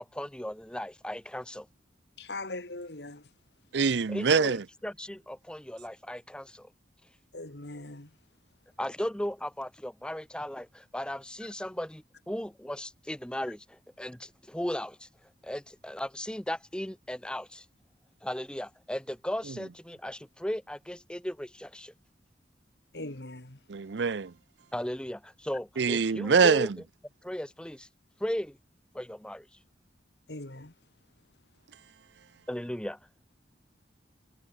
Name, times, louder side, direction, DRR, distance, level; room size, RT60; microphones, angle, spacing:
voice 1, 0.0-1.7 4.1-4.6 4.8-6.7 8.8-15.1 15.4-17.6 18.2-21.9 24.7-26.7 27.2-27.9 28.2-28.6 28.9-29.4 32.5-33.0, equal, 5° left, 0.9 m, -36 dB
voice 2, 2.2-3.3 7.3-8.1 22.9-23.6 30.3-30.7, left 2 dB, 70° left, 2.6 m, -40 dB
voice 3, 3.7-4.7 23.7-24.3 25.8-26.8, right 5 dB, 75° right, 0.6 m, -24 dB
head